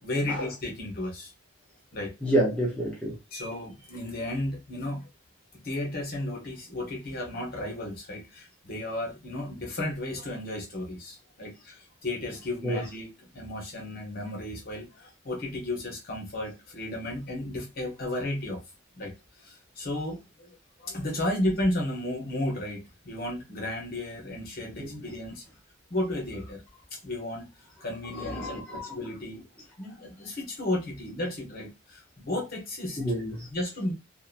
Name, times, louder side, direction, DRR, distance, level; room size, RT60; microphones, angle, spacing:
voice 1, 0.0-1.3 1.9-2.1 3.3-5.1 5.6-18.6 19.0-25.4 25.9-26.6 27.0-27.4 27.8-29.4 29.8-33.1 33.5-33.9, left 1 dB, 50° left, 1.0 m, -33 dB
voice 2, 2.2-3.1 12.6-12.8 24.8-25.0 28.4-28.9 33.0-33.5, right 1 dB, 5° left, 0.6 m, -28 dB
2.7 x 2.2 x 2.4 m
head